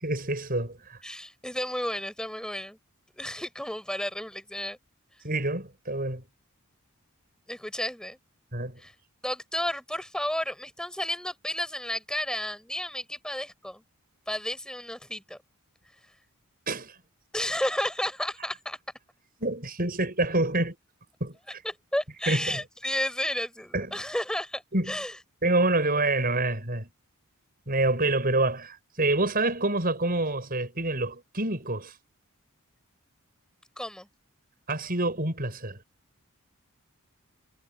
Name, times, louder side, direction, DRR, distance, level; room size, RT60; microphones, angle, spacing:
voice 1, 0.0-1.0 5.2-6.3 8.5-8.8 16.7-16.9 19.4-20.8 21.2-21.6 22.3-22.6 23.7-24.0 24.7-25.0 25.4-26.9 27.7-31.9 34.7-35.8, right 2 dB, 40° right, 7.7 m, -27 dB
voice 2, 1.0-2.8 3.2-4.8 7.5-8.2 8.8-8.9 9.2-13.8 14.3-15.4 17.3-18.8 21.9-25.1 33.8-34.1, left 1 dB, 5° left, 6.9 m, -32 dB
head